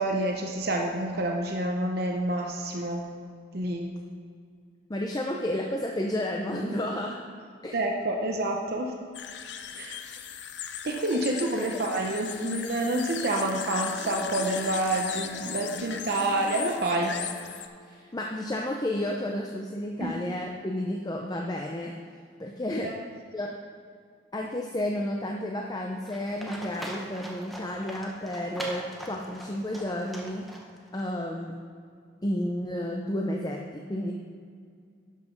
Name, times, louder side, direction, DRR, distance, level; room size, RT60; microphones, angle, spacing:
voice 1, 0.0-3.1 3.5-3.9 6.7-6.9 7.3-7.4 7.7-8.9 9.7-10.0 10.8-17.1 20.0-20.2 22.8-22.9, right 1 dB, 55° right, 1 dB, 0.8 m, -28 dB
voice 2, 4.9-7.2 7.6-7.8 11.3-11.9 17.9-21.9 22.4-22.9 23.3-23.5 24.3-30.4 30.9-31.5 32.2-34.1, left 1 dB, 20° left, 0 dB, 0.6 m, -31 dB
sound 1, 9.1-17.7, left 9 dB, 65° left, 0.6 m, -38 dB
sound 2, 12.3-17.7, left 2 dB, 45° left, 1.5 m, -43 dB
Livestock farm animals working animals, 26.1-31.0, equal, ahead, 1.0 m, -41 dB
12.0 x 5.8 x 5.3 m, 2.2 s
head